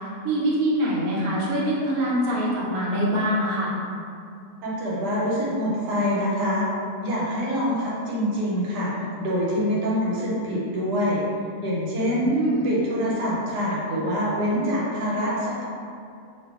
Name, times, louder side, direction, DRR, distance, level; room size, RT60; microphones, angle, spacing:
voice 1, 0.2-3.7 12.0-12.7, equal, 65° right, -6 dB, 1.0 m, -24 dB
voice 2, 4.6-6.7 7.0-8.9 9.2-11.2 11.6-12.3 12.6-15.7, equal, 85° right, -6 dB, 1.3 m, -25 dB
2.7 x 2.4 x 3.4 m, 2.4 s
omnidirectional pair, 1.7 m